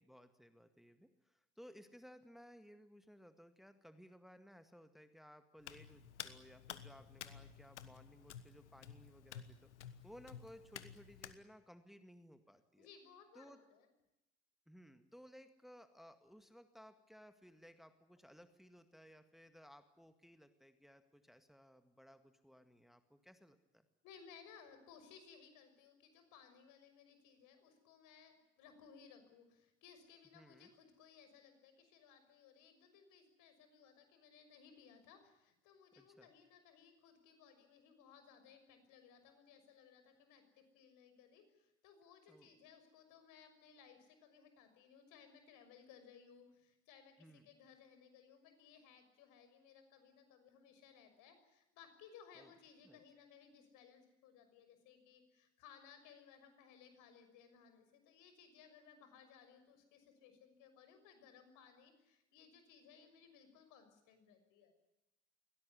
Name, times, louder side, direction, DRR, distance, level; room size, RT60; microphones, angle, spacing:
voice 1, 0.0-12.9 13.3-13.6 14.7-23.8 30.3-30.7 36.0-36.3 42.3-42.5 47.2-47.6 52.4-52.5 52.8-53.0, equal, ahead, 9 dB, 1.9 m, -60 dB
Hands, 5.6-11.4, left 9 dB, 90° left, 1.4 m, -52 dB
voice 2, 12.8-13.9 24.0-64.7, left 7 dB, 65° left, 8 dB, 6.3 m, -62 dB
23.0 x 17.5 x 9.9 m, 0.94 s
hypercardioid pair, 70°, 33 cm